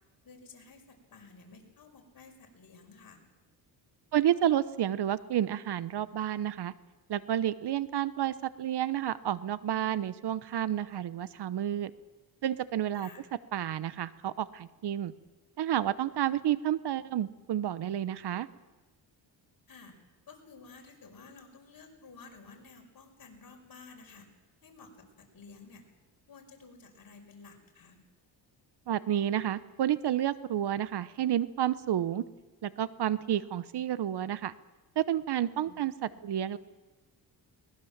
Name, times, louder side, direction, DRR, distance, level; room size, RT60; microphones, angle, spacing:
voice 1, 0.2-3.2 12.9-13.2 19.7-20.0 20.3-24.3 24.6-25.8 26.3-28.0 35.6-35.7, left 4 dB, 50° left, 2 dB, 5.6 m, -53 dB
voice 2, 4.1-6.7 7.1-11.9 12.4-13.1 13.5-15.1 15.6-18.5 28.9-32.2 32.6-34.5 35.0-36.6, right 11 dB, 60° right, 16 dB, 1.0 m, -30 dB
22.0 x 20.0 x 7.4 m, 1.2 s
cardioid pair, 85°, 45 cm